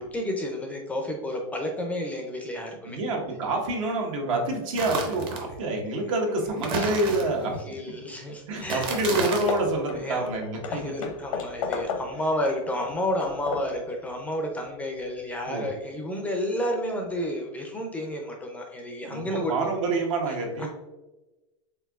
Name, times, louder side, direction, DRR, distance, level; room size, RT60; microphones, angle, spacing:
voice 1, 0.0-3.0 6.7-6.9 7.6-8.9 9.9-10.3 10.7-19.5 20.3-20.7, left 1 dB, 10° left, 2 dB, 0.4 m, -31 dB
voice 2, 2.8-7.5 8.5-11.1 15.5-15.7 19.1-20.7, right 2 dB, 75° right, 1 dB, 1.2 m, -27 dB
sound 1, 4.7-5.5 6.6-7.6 8.6-9.6, right 3 dB, 30° right, 0.7 m, -31 dB
Hammer / Wood, 8.5-8.6 8.9-9.1 9.5-12.3 12.8-13.8, left 5 dB, 80° left, 0.7 m, -34 dB
4.5 x 3.6 x 2.3 m, 1.1 s
supercardioid pair, 150°, 17 cm